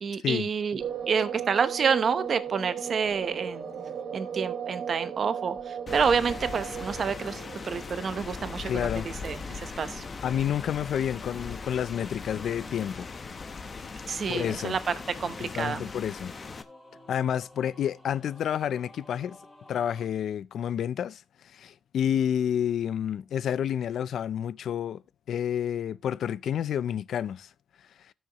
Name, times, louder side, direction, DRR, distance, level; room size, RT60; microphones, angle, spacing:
voice 1, 0.0-3.7 4.1-10.0 14.1-14.9 15.2-15.9, right 6 dB, 40° right, 0.9 m, -29 dB
sound 1, 0.8-8.4, right 8 dB, 70° right, 2.5 m, -36 dB
Rain, 5.9-16.6, left 4 dB, 30° left, 0.9 m, -39 dB
sound 2, 7.9-20.1, left 2 dB, 15° left, 3.5 m, -52 dB
voice 2, 8.7-9.1 10.2-13.1 14.3-14.8 15.4-16.3 17.1-19.4 19.7-21.2 21.5-25.0 25.3-27.5, left 9 dB, 65° left, 0.4 m, -29 dB
17.0 x 6.4 x 3.0 m
wide cardioid pair, 170°, 0 cm